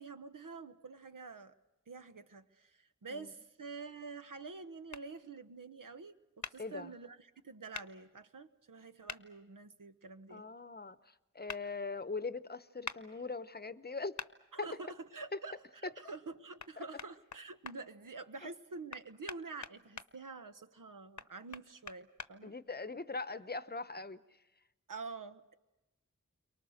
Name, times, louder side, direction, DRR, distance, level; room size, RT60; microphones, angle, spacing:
voice 1, 0.0-1.5 1.9-10.4 14.5-15.5 15.8-22.5 24.9-25.5, right 4 dB, 75° right, 1.2 m, -47 dB
sound 1, 4.9-5.0 6.4-6.6 7.7-7.9 9.1-9.2 11.5-11.6 12.8-13.0 14.2-14.3 16.6-16.7 17.0-17.8 18.9-20.1 21.2-22.3, left 5 dB, 60° left, 0.9 m, -43 dB
voice 2, 6.6-6.9 10.3-14.2 15.3-15.4 16.8-16.9 18.4-18.5 22.4-24.2, left 3 dB, 30° left, 0.9 m, -41 dB
30.0 x 23.5 x 6.5 m
wide cardioid pair, 65°, 32 cm